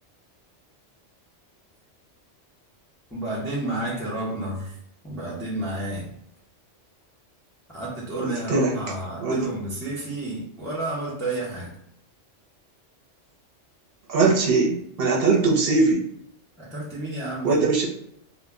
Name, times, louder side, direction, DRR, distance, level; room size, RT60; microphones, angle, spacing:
voice 1, 3.1-4.8 5.0-6.1 7.7-11.8 16.6-17.7, right 2 dB, 5° left, -6 dB, 0.5 m, -31 dB
voice 2, 8.2-8.7 9.2-9.4 14.1-16.0 17.4-17.9, right 3 dB, 60° right, -2 dB, 0.8 m, -21 dB
2.2 x 2.1 x 3.5 m, 0.72 s
omnidirectional pair, 1.3 m